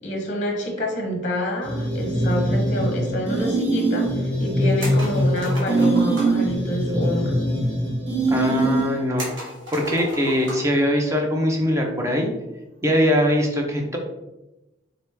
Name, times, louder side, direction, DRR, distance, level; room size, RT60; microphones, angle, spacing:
voice 1, 0.0-7.4, equal, 40° left, 1 dB, 0.7 m, -28 dB
sound 1, 1.6-9.1, right 1 dB, 60° right, 1.5 m, -22 dB
sound 2, 4.8-6.5 9.2-10.8 11.1-11.2 12.8-13.1, right 1 dB, 80° right, 1.3 m, -34 dB
voice 2, 8.3-9.3 9.7-12.3 12.8-14.0, equal, 15° right, 1 dB, 0.6 m, -21 dB
3.8 x 3.0 x 3.3 m, 0.96 s
head